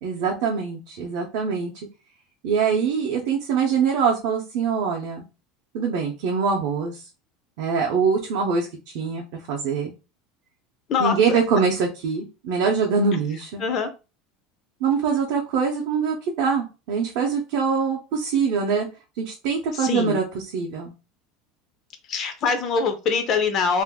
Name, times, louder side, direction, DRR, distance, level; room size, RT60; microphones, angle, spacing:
voice 1, 0.0-1.9 2.4-5.2 5.7-7.0 7.6-9.9 11.0-13.6 14.8-18.9 19.2-20.2 20.5-20.9, right 5 dB, 50° right, -1 dB, 0.6 m, -23 dB
voice 2, 10.9-11.4 13.6-13.9 19.7-20.2 22.1-23.8, left 5 dB, 30° left, 8 dB, 0.4 m, -24 dB
2.5 x 2.3 x 3.5 m, 0.29 s
cardioid pair, 180°, 0 cm